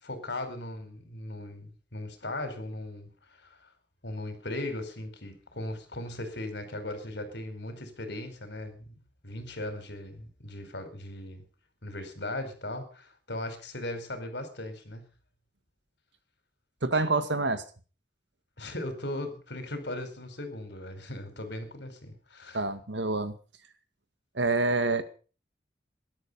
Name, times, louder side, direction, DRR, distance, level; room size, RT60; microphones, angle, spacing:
voice 1, 0.0-3.1 3.4-3.7 4.0-8.9 9.2-11.4 11.8-15.0 18.6-22.6, left 1 dB, 70° left, 8 dB, 4.9 m, -38 dB
voice 2, 16.8-17.6 22.5-23.4 24.3-25.0, right 3 dB, 85° right, 10 dB, 2.1 m, -27 dB
18.0 x 12.0 x 5.6 m, 0.38 s
head